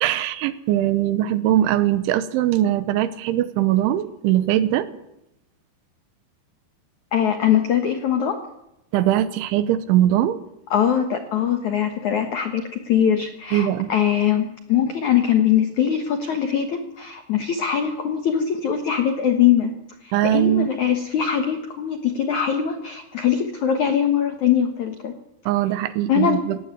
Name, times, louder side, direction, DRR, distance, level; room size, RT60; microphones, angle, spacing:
voice 1, 0.0-4.9 8.9-10.4 13.5-13.9 20.1-20.7 25.5-26.6, right 12 dB, 80° right, 14 dB, 3.3 m, -21 dB
voice 2, 7.1-8.4 10.7-19.7 20.0-25.1 26.1-26.4, left 9 dB, 75° left, 7 dB, 1.7 m, -22 dB
18.5 x 16.5 x 9.7 m, 0.87 s
omnidirectional pair, 5.6 m